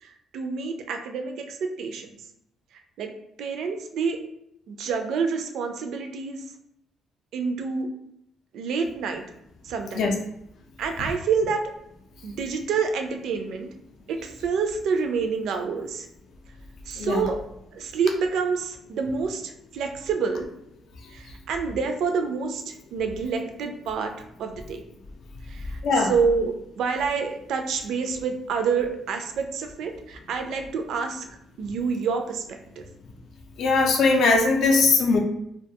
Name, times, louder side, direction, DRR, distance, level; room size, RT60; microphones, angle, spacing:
voice 1, 0.0-2.2 2.7-3.1 3.4-4.2 4.7-6.4 7.3-7.9 8.5-9.2 9.6-10.1 10.8-11.6 12.2-13.7 14.1-16.1 16.9-17.4 17.7-20.5 21.1-24.1 24.4-24.8 25.5-25.8 26.1-31.2 31.6-32.8, right 5 dB, 65° right, 5 dB, 0.3 m, -28 dB
voice 2, 21.0-21.3 25.8-26.1 33.6-35.2, left 3 dB, 55° left, 2 dB, 0.4 m, -20 dB
2.3 x 2.2 x 2.7 m, 0.77 s
cardioid pair, 165°, 0 cm